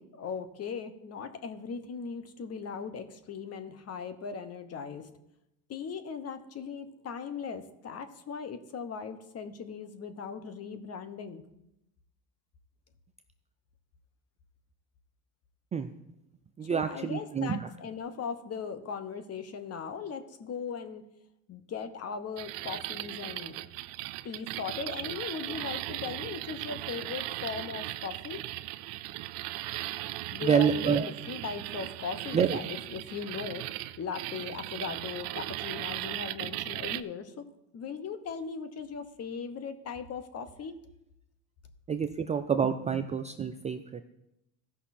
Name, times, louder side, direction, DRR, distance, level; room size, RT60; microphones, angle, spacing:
voice 1, 0.0-5.1 5.7-11.4 16.6-21.0 21.5-23.7 24.2-28.4 30.3-37.4 37.7-40.8, left 6 dB, 35° left, 10 dB, 1.1 m, -39 dB
voice 2, 16.6-17.7 30.4-31.1 32.3-32.6 41.9-44.0, right 7 dB, 15° right, 8 dB, 0.3 m, -28 dB
sound 1, 22.4-37.0, right 16 dB, 65° right, 0.6 m, -38 dB
15.5 x 5.5 x 4.3 m, 0.85 s
supercardioid pair, 95°, 43 cm